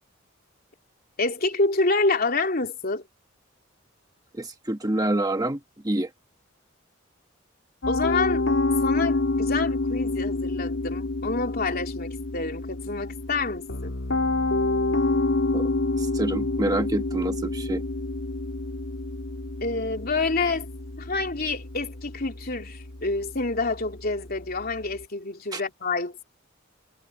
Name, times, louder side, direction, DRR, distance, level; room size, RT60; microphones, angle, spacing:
voice 1, 1.2-3.0 7.9-8.5 8.8-13.9 19.6-20.7 21.0-26.2, left 3 dB, 50° left, 3.2 m, -27 dB
voice 2, 4.3-6.1 15.5-17.8 25.5-25.6, right 1 dB, 20° right, 1.5 m, -27 dB
Piano, 7.8-24.9, left 2 dB, 75° left, 1.9 m, -28 dB
head